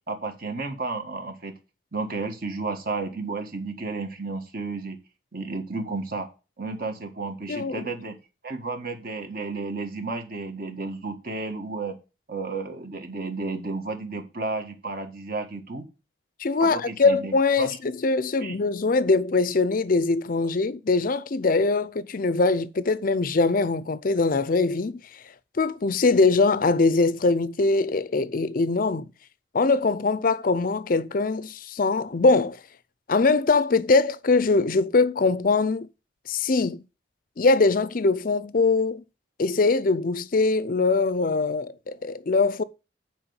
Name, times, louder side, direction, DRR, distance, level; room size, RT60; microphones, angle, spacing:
voice 1, 0.1-1.5 1.9-5.0 5.3-6.3 6.6-8.2 8.4-11.9 12.3-15.8 16.6-17.8 18.4-18.6, right 3 dB, 50° right, 1.7 m, -32 dB
voice 2, 7.5-7.9 16.4-25.0 25.6-29.1 29.5-32.6 33.1-35.9 36.3-36.8 37.4-39.0 39.4-42.6, left 3 dB, 45° left, 0.5 m, -22 dB
8.8 x 4.6 x 7.0 m
head